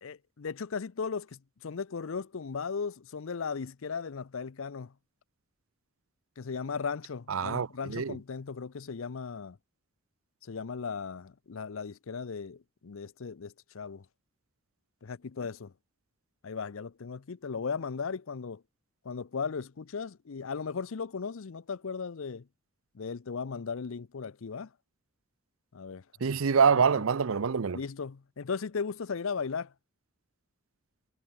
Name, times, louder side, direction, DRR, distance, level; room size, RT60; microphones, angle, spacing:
voice 1, 0.0-4.9 6.4-9.6 10.4-14.0 15.0-15.7 16.4-18.6 19.0-22.5 22.9-24.7 25.7-26.0 26.9-27.0 27.7-29.7, left 5 dB, 65° left, 0.6 m, -37 dB
voice 2, 7.3-8.2 26.2-27.8, right 6 dB, 65° right, 0.6 m, -25 dB
head